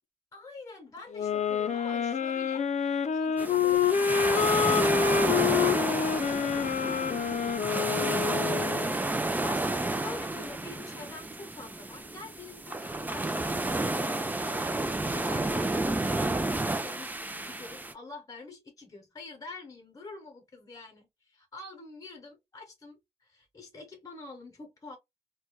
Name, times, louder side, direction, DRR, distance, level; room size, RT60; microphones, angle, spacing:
voice 1, 0.3-8.9 9.3-14.6 15.1-25.0, left 3 dB, 30° left, 0.8 m, -47 dB
sound 1, 1.1-9.0, left 7 dB, 80° left, 0.5 m, -27 dB
sound 2, 3.4-17.9, right 2 dB, 15° right, 0.4 m, -31 dB
4.6 x 2.2 x 2.2 m
wide cardioid pair, 155°, 12 cm